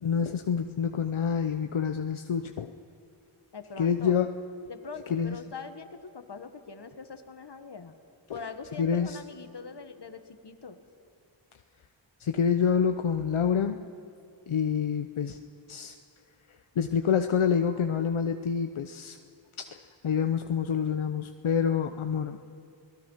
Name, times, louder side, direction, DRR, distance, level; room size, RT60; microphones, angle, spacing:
voice 1, 0.0-2.8 3.8-4.3 5.1-5.4 8.3-8.4 8.8-9.2 12.2-13.8 14.5-15.4 15.7-15.9 16.8-19.2 19.6-19.8 20.0-22.4, left 7 dB, 75° left, 7 dB, 0.8 m, -27 dB
voice 2, 3.5-4.1 4.7-7.9 8.3-10.8, left 5 dB, 55° left, 8 dB, 1.6 m, -42 dB
28.0 x 19.0 x 5.7 m, 2.3 s
wide cardioid pair, 55°, 49 cm